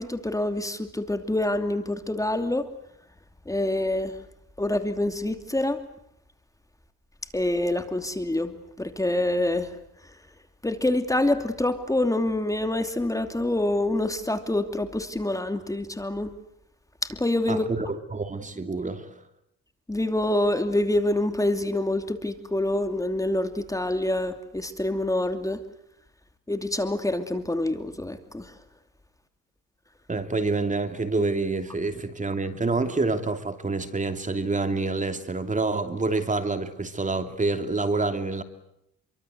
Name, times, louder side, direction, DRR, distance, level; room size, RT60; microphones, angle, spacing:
voice 1, 0.0-2.7 3.5-4.2 4.6-5.8 7.3-10.1 10.6-16.3 17.0-17.6 19.9-25.6 26.5-28.5, left 1 dB, 10° left, 2.8 m, -26 dB
voice 2, 17.5-17.9 18.1-19.1 30.1-38.4, right 3 dB, 25° right, 3.0 m, -27 dB
28.0 x 24.0 x 8.1 m
cardioid pair, 90°, 30 cm